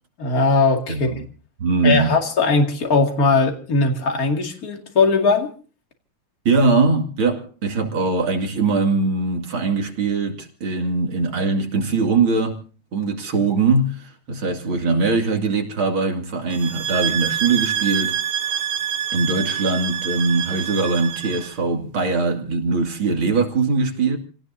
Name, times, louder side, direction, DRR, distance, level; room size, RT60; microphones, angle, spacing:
voice 1, 0.2-1.1 1.8-5.5, left 3 dB, 45° left, 2.7 m, -19 dB
voice 2, 0.9-1.3 1.6-2.2 6.4-12.6 12.9-18.6 19.1-24.2, right 4 dB, 75° right, 3.2 m, -21 dB
sound 1, 16.5-21.6, right 9 dB, 60° right, 1.4 m, -26 dB
29.0 x 18.0 x 2.7 m
omnidirectional pair, 2.3 m